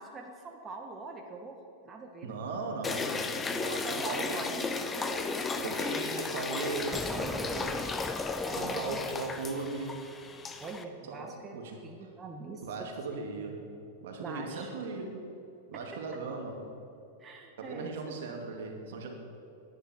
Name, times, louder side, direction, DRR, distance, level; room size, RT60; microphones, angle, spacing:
voice 1, 0.0-2.4 3.8-6.0 7.6-9.0 10.6-11.6 11.8-12.6 14.2-14.7 17.2-18.1, right 3 dB, 25° right, 2 dB, 1.6 m, -43 dB
voice 2, 2.2-4.6 5.6-8.1 8.5-10.0 11.1-11.7 12.0-12.1 12.6-13.6 14.0-15.3 15.7-16.6 17.6-19.1, right 3 dB, 65° right, 1 dB, 2.6 m, -38 dB
sound 1, 2.8-10.8, left 4 dB, 20° left, 1.0 m, -34 dB
Explosion, 6.9-9.8, equal, ahead, 0.5 m, -41 dB
18.0 x 11.0 x 4.6 m, 2.8 s
hypercardioid pair, 100°, 0 cm